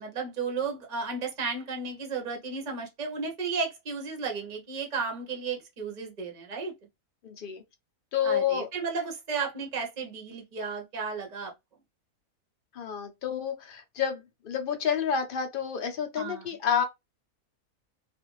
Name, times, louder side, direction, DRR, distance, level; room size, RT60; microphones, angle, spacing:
voice 1, 0.0-6.7 8.2-11.5 16.2-16.5, right 4 dB, 40° right, 0.6 m, -33 dB
voice 2, 7.2-7.6 8.1-8.7 12.7-16.8, left 8 dB, 60° left, 0.6 m, -29 dB
2.5 x 2.4 x 2.9 m
omnidirectional pair, 1.5 m